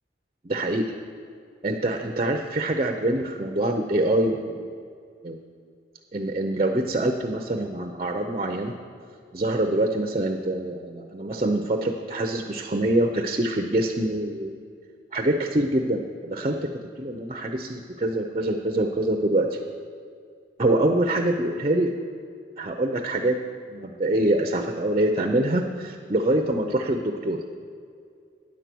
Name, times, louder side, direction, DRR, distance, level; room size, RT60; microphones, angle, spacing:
voice 1, 0.4-1.0 1.6-4.7 5.2-5.4 6.1-8.7 9.3-14.5 15.1-16.6 17.0-19.6 20.6-21.9 22.6-23.4 23.7-27.4, right 1 dB, 35° right, 5 dB, 0.5 m, -25 dB
9.7 x 8.1 x 6.0 m, 2.3 s
head